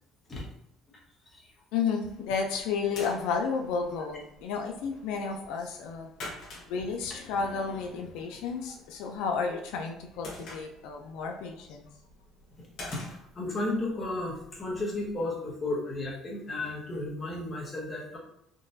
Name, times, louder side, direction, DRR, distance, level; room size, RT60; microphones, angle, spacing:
voice 1, 1.7-6.1 6.7-11.9, left 5 dB, 80° left, 3 dB, 0.4 m, -32 dB
sound 1, 2.1-15.2, left 2 dB, 50° left, 1.1 m, -49 dB
voice 2, 12.8-18.2, left 2 dB, 20° left, -4 dB, 0.8 m, -33 dB
3.7 x 2.4 x 2.6 m, 0.76 s
cardioid pair, 170°, 0 cm